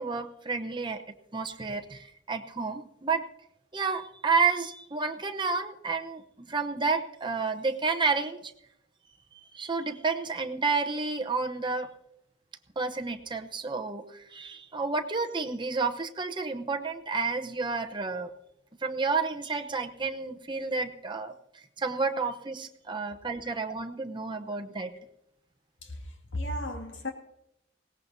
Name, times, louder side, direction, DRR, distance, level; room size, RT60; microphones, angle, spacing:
voice 1, 0.0-3.3 3.7-8.5 9.5-11.9 12.8-18.3 18.8-21.3 21.8-24.9, right 4 dB, 25° right, 0.9 m, -30 dB
voice 2, 23.0-23.6 24.9-25.0 25.8-27.1, left 1 dB, 80° left, 2.2 m, -37 dB
20.5 x 17.5 x 2.7 m
head